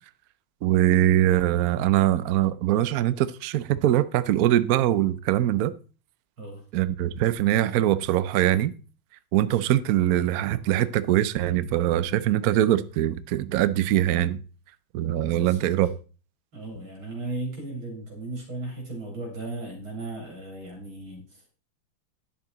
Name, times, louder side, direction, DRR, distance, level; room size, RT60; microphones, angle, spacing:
voice 1, 0.6-5.7 6.7-8.7 9.3-14.4 14.9-15.9, right 13 dB, 70° right, 0.9 m, -22 dB
voice 2, 15.2-15.7 16.5-21.5, right 2 dB, 90° right, 4.3 m, -36 dB
10.5 x 6.9 x 3.9 m
omnidirectional pair, 2.1 m